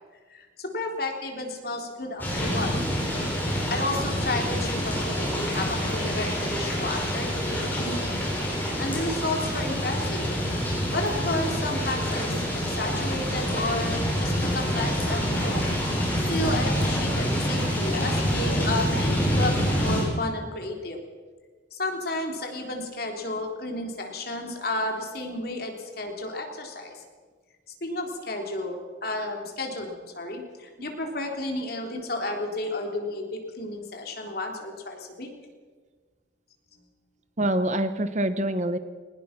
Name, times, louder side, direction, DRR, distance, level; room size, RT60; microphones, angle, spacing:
voice 1, 0.3-2.8 3.7-8.2 8.6-10.3 10.9-15.7 16.3-21.0 21.7-27.0 27.8-35.3, left 2 dB, 50° left, 2 dB, 3.7 m, -32 dB
sound 1, 2.2-20.0, equal, 10° left, 7.3 m, -27 dB
voice 2, 37.4-38.8, right 1 dB, 35° right, 11 dB, 0.9 m, -25 dB
22.5 x 19.5 x 6.0 m, 1.5 s
head